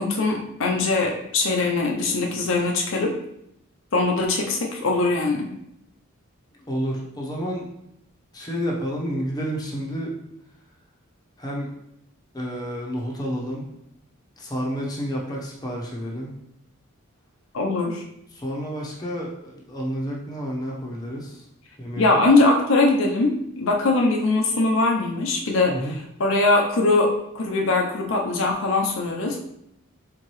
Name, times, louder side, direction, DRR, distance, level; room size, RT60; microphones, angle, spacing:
voice 1, 0.0-3.1 3.9-5.5 17.5-18.0 22.0-23.3 23.6-29.4, left 2 dB, 65° left, 0 dB, 0.6 m, -21 dB
voice 2, 6.7-7.7 8.3-10.1 11.4-11.7 12.3-13.6 14.4-16.3 18.3-21.4 21.8-22.2 25.7-26.0, equal, 20° left, -3 dB, 0.8 m, -30 dB
4.5 x 3.8 x 3.1 m, 0.78 s
head